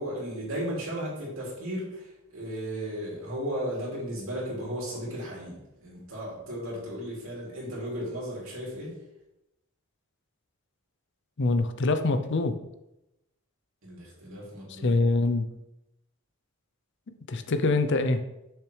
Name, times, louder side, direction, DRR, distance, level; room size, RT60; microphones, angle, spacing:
voice 1, 0.0-2.0 2.3-8.9 13.8-14.9, equal, 70° right, -4 dB, 2.9 m, -35 dB
voice 2, 11.4-12.5 14.8-15.5 17.3-18.2, left 3 dB, 55° left, 9 dB, 0.6 m, -24 dB
6.8 x 6.5 x 3.3 m, 0.89 s
head